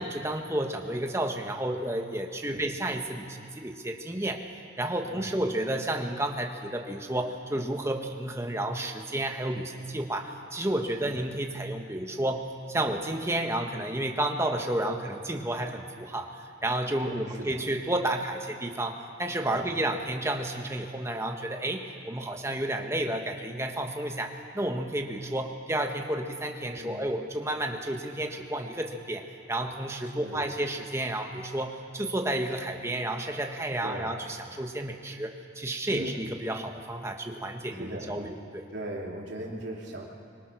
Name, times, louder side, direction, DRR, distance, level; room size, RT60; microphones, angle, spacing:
voice 1, 0.0-4.4 4.8-29.2 29.5-38.6, right 1 dB, 15° right, 3 dB, 1.4 m, -31 dB
voice 2, 5.0-5.3 10.9-11.2 17.0-17.6 19.5-19.7 26.7-27.0 30.2-30.5 33.8-34.1 35.9-36.2 37.7-38.3 38.7-40.1, right 1 dB, 60° right, -2 dB, 3.2 m, -39 dB
25.0 x 22.5 x 6.2 m, 2.4 s
head